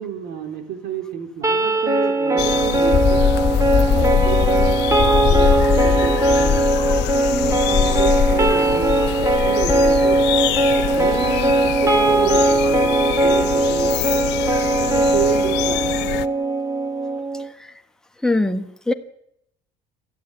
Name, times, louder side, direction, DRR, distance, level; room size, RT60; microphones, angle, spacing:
voice 1, 0.0-3.2 3.7-6.7 7.1-9.1 9.4-10.2 11.0-14.3 14.7-15.9, right 8 dB, 70° right, 5 dB, 3.6 m, -30 dB
sound 1, 1.4-17.5, right 2 dB, 15° right, 1.7 m, -19 dB
sound 2, 2.4-16.3, left 17 dB, 80° left, 0.8 m, -27 dB
sound 3, 2.9-15.4, left 8 dB, 35° left, 1.0 m, -23 dB
voice 2, 18.2-18.9, left 2 dB, 5° left, 5 dB, 1.4 m, -21 dB
22.5 x 15.0 x 9.9 m, 0.80 s
cardioid pair, 160°, 17 cm